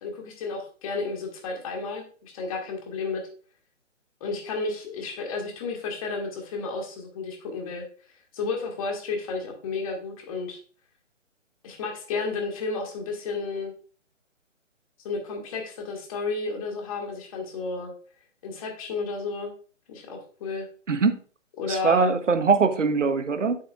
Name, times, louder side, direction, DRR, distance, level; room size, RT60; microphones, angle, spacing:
voice 1, 0.0-3.2 4.2-7.8 8.3-10.6 11.6-13.7 15.0-17.9 18.4-19.5 19.9-20.7 21.6-22.2, left 4 dB, 25° left, 2 dB, 1.6 m, -32 dB
voice 2, 21.7-23.6, right 5 dB, 70° right, 10 dB, 1.0 m, -22 dB
8.5 x 7.2 x 2.4 m, 0.42 s
figure-of-eight pair, 140°, 38 cm